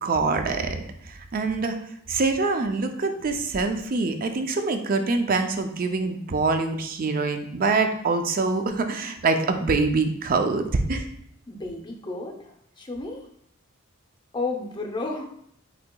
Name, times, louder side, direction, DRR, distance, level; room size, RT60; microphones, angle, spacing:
voice 1, 0.0-1.8 2.1-11.1, right 3 dB, 40° right, 7 dB, 0.4 m, -25 dB
voice 2, 11.5-13.2 14.3-15.3, left 3 dB, 20° left, 1 dB, 0.6 m, -32 dB
8.3 x 2.8 x 2.2 m, 0.70 s
head